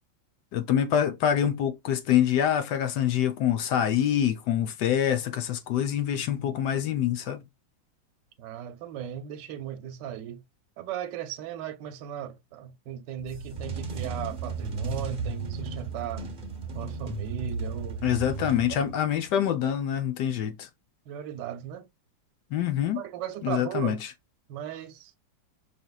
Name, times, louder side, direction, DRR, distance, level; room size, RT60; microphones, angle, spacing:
voice 1, 0.5-7.4 18.0-20.7 22.5-23.0 23.4-24.0, left 10 dB, 70° left, 1.1 m, -25 dB
voice 2, 8.4-10.4 10.8-16.3 16.7-18.0 18.7-18.9 21.1-21.9 23.0-24.0 24.5-25.1, right 10 dB, 70° right, 1.2 m, -37 dB
sound 1, 13.2-19.2, right 4 dB, 40° right, 0.8 m, -34 dB
5.5 x 3.4 x 2.2 m
omnidirectional pair, 2.1 m